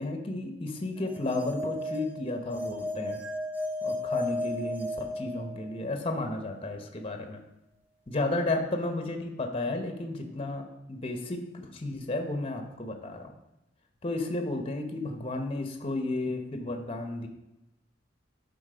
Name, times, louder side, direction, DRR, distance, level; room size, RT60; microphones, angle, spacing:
voice 1, 0.0-3.2 3.8-7.4 8.1-13.3 14.0-17.3, left 2 dB, 30° left, 5 dB, 1.0 m, -33 dB
sound 1, 1.0-5.9, left 1 dB, 10° right, 1.7 m, -34 dB
11.0 x 4.3 x 5.0 m, 0.92 s
head